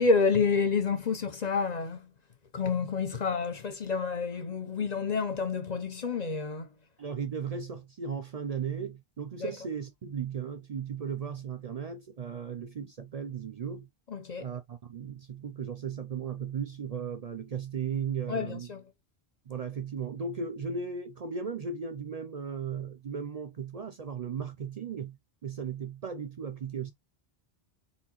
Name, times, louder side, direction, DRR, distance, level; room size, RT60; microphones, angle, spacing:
voice 1, 0.0-2.1 2.5-6.7 9.4-9.5 14.1-14.5 18.3-18.8, left 4 dB, 45° left, 0.8 m, -29 dB
voice 2, 7.0-13.9 14.4-18.7 19.5-26.9, right 6 dB, 50° right, 0.5 m, -36 dB
4.3 x 3.4 x 2.9 m
omnidirectional pair, 1.0 m